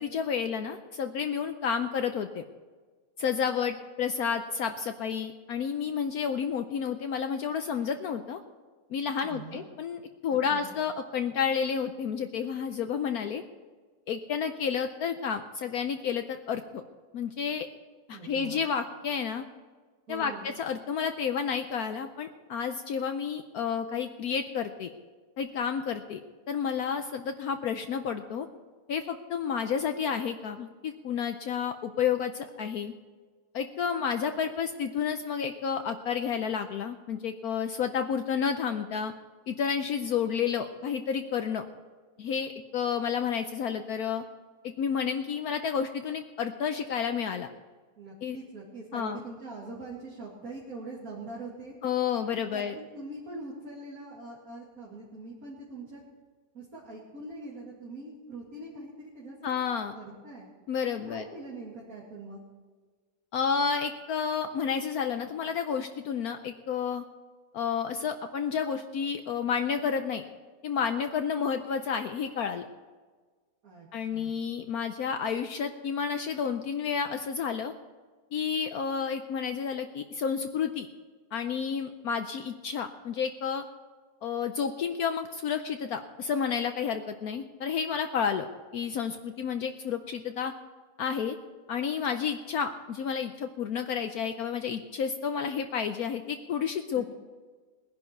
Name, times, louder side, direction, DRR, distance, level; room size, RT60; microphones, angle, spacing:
voice 1, 0.0-2.4 3.2-8.4 8.9-13.4 14.1-16.8 17.1-17.7 18.1-19.4 20.1-24.9 25.4-26.2 26.5-28.5 28.9-32.9 33.5-39.1 39.5-41.6 42.2-44.2 44.6-47.5 48.2-48.4 48.9-49.2 51.8-52.7 59.4-60.0 60.7-61.3 63.3-67.0 67.5-70.2 70.6-72.7 73.9-77.7 78.3-80.9 81.3-83.6 84.2-90.5 91.0-91.4 91.7-97.1, left 7 dB, 65° left, 7 dB, 1.1 m, -30 dB
voice 2, 9.2-9.7 10.3-10.8 18.1-18.7 20.1-20.5 48.0-51.7 52.3-56.0 56.5-59.6 59.9-60.5 61.1-62.4 73.6-74.4 96.9-97.1, right 2 dB, 55° right, -5 dB, 2.8 m, -43 dB
20.0 x 10.5 x 4.5 m, 1.4 s
omnidirectional pair, 1.8 m